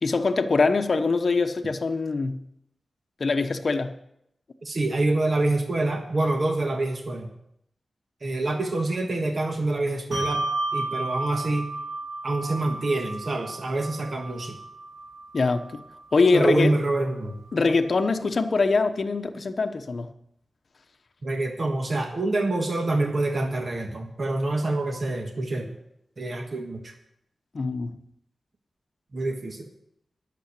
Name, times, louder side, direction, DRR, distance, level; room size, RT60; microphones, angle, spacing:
voice 1, 0.0-2.4 3.2-3.9 15.3-15.8 16.1-16.7 17.5-20.1 27.5-28.0, left 4 dB, 50° left, 7 dB, 0.9 m, -23 dB
voice 2, 4.6-7.3 8.2-10.4 10.7-11.7 12.2-14.6 16.3-17.4 21.2-25.7 26.2-26.9 29.1-29.7, right 2 dB, 45° right, 3 dB, 1.4 m, -26 dB
Bell, 10.1-17.0, right 2 dB, 75° right, 2.2 m, -33 dB
11.5 x 6.9 x 8.1 m, 0.76 s
wide cardioid pair, 140°, 0 cm